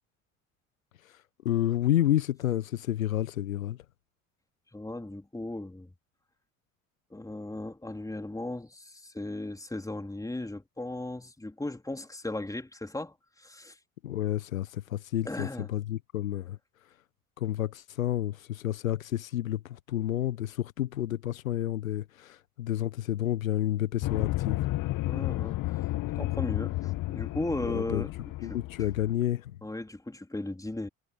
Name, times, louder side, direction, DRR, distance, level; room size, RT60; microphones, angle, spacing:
voice 1, 1.4-3.8 14.0-16.6 17.4-24.6 27.6-28.0 28.4-29.5, left 12 dB, 75° left, 1.5 m, -30 dB
voice 2, 4.7-5.9 7.1-13.8 15.3-15.7 25.1-25.8 26.2-28.1 28.5-28.6 29.6-30.9, left 2 dB, 10° left, 4.0 m, -36 dB
sound 1, 24.0-29.1, left 18 dB, 50° left, 2.1 m, -32 dB
figure-of-eight pair, 55°, 41 cm